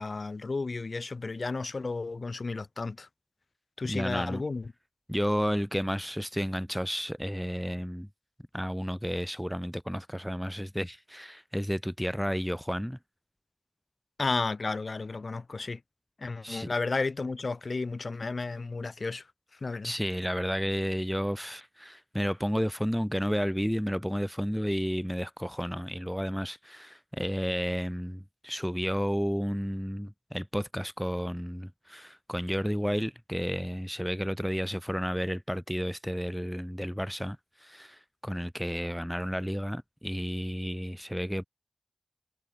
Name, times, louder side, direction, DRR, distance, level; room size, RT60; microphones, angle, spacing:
voice 1, 0.0-3.1 3.8-4.7 14.2-15.8 16.2-19.2 19.6-19.9, left 3 dB, 70° left, 3.0 m, -33 dB
voice 2, 3.8-4.4 5.1-8.1 8.5-13.0 16.4-16.7 19.8-41.4, equal, ahead, 0.7 m, -32 dB
wide cardioid pair, 75°, 0 cm